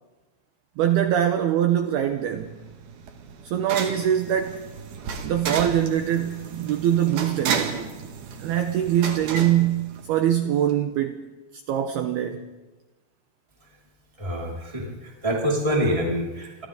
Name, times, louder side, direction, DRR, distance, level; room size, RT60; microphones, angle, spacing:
voice 1, 0.8-2.5 3.4-4.6 5.2-7.9 8.4-11.3 11.7-12.5, right 10 dB, 75° right, 2.4 m, -23 dB
sound 1, 2.1-10.5, right 5 dB, 55° right, 3.4 m, -33 dB
voice 2, 14.2-16.7, equal, 5° right, 4.9 m, -26 dB
28.5 x 25.0 x 4.0 m
omnidirectional pair, 5.8 m